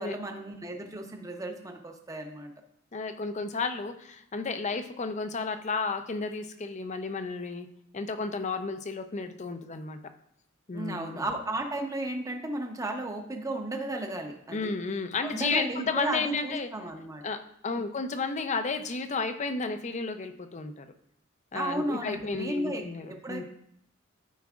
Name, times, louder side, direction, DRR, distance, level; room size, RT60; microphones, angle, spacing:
voice 1, 0.0-2.5 10.7-14.7 15.2-17.2 17.8-17.9 21.5-23.4, right 1 dB, 15° right, 4 dB, 0.8 m, -34 dB
voice 2, 2.9-7.7 7.9-10.0 10.7-11.2 14.5-16.7 17.2-20.9 21.5-23.4, left 4 dB, 35° left, 9 dB, 0.6 m, -32 dB
13.5 x 4.7 x 2.4 m, 0.72 s
head